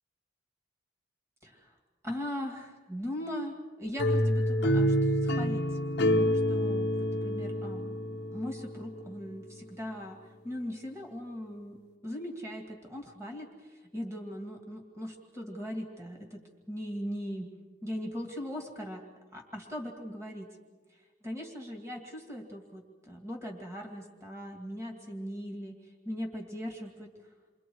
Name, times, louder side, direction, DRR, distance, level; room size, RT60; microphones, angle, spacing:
voice 1, 1.4-1.8 2.0-5.8 6.1-10.2 10.4-16.4 16.7-17.5 17.8-19.1 19.3-20.5 20.9-27.1, equal, 15° right, 2 dB, 2.2 m, -39 dB
sound 1, 4.0-8.9, equal, 55° left, 1.0 m, -27 dB
28.5 x 23.5 x 4.7 m, 1.4 s
head